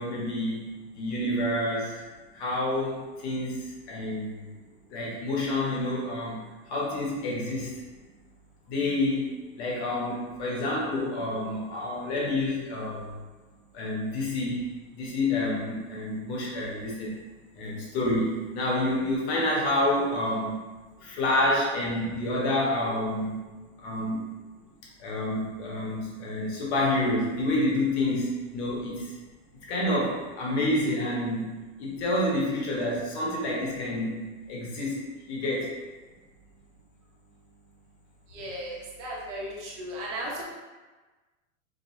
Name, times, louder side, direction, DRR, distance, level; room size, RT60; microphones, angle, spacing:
voice 1, 0.0-2.0 2.3-4.4 4.9-6.4 6.7-7.7 8.7-13.1 13.7-17.2 17.6-20.6 21.0-23.4 23.8-24.3 25.0-29.2 29.7-35.7, left 1 dB, 50° left, -3 dB, 1.3 m, -28 dB
voice 2, 38.3-40.4, right 1 dB, 60° right, -4 dB, 1.1 m, -36 dB
5.2 x 2.2 x 3.1 m, 1.2 s
supercardioid pair, 160°, 41 cm